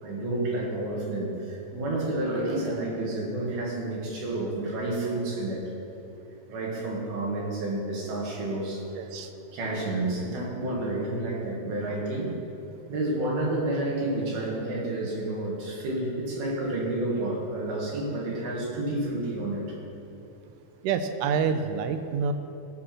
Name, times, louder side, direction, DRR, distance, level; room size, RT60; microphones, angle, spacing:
voice 1, 0.0-5.6 6.5-8.8 9.5-12.4 12.9-19.7, right 2 dB, 65° right, -3 dB, 3.7 m, -30 dB
voice 2, 8.9-9.3 20.8-22.3, right 6 dB, 80° right, 7 dB, 2.4 m, -27 dB
16.5 x 6.2 x 6.0 m, 2.9 s
omnidirectional pair, 5.0 m